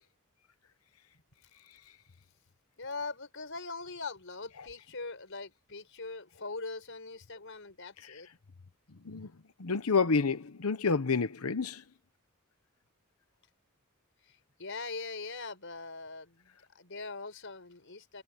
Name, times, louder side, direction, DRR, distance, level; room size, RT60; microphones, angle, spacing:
voice 1, 2.8-8.3 14.6-18.2, left 3 dB, 60° left, 5.4 m, -41 dB
voice 2, 8.9-9.3 9.6-11.8, left 4 dB, 90° left, 0.9 m, -29 dB
head